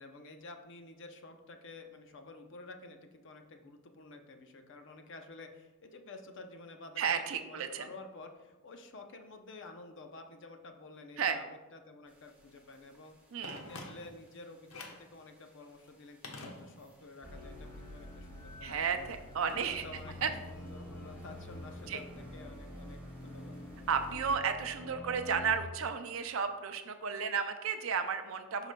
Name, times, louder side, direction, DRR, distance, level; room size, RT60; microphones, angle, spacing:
voice 1, 0.0-13.2 13.5-19.1 19.4-23.6, left 2 dB, 55° left, 5 dB, 0.6 m, -51 dB
voice 2, 7.0-7.9 11.2-11.4 13.3-13.6 18.6-19.8 20.2-20.3 21.9-22.0 23.9-28.7, right 6 dB, 65° right, 7 dB, 0.4 m, -33 dB
sound 1, 12.1-24.4, equal, 10° right, 1.2 m, -58 dB
Telephone, 13.4-14.3 14.7-15.1 16.2-17.1 17.4-17.5, left 2 dB, 75° left, 1.0 m, -46 dB
sound 2, 17.2-25.6, left 1 dB, 10° left, 1.3 m, -47 dB
11.5 x 4.8 x 2.2 m, 1.1 s
head